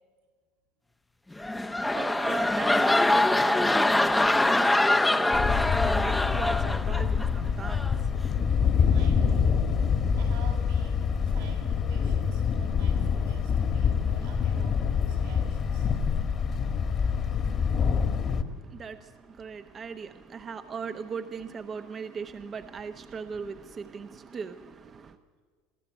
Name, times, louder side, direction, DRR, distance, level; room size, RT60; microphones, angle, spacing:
sound 1, 1.3-7.3 7.6-8.0, left 2 dB, 10° left, 0.7 m, -24 dB
voice 1, 1.4-8.9 18.5-25.2, right 6 dB, 30° right, 0.9 m, -39 dB
Thunder, 5.3-18.4, left 6 dB, 40° left, 1.5 m, -26 dB
voice 2, 8.8-9.6 10.2-15.9, right 4 dB, 85° right, 6.1 m, -49 dB
22.5 x 14.5 x 8.0 m
supercardioid pair, 100°, 0 cm